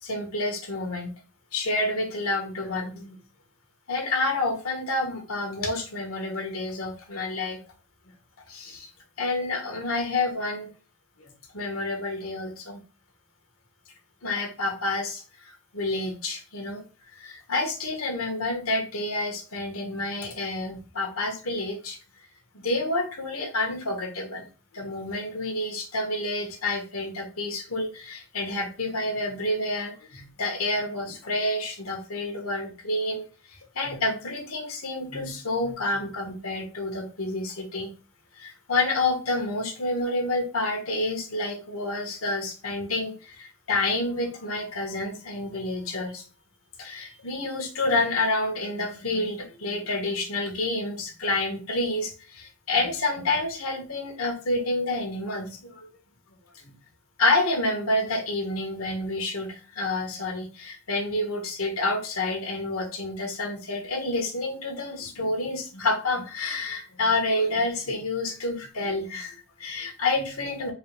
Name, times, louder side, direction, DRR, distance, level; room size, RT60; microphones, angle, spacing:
voice 1, 0.0-1.1 1.5-3.2 3.9-7.6 8.5-8.9 9.2-10.7 11.2-12.8 14.2-16.8 17.1-22.0 22.5-24.5 24.7-37.9 38.3-46.2 46.8-55.9 56.6-56.7 57.2-70.7, left 2 dB, 80° left, 3 dB, 1.5 m, -29 dB
4.8 x 3.3 x 3.2 m, 0.34 s
head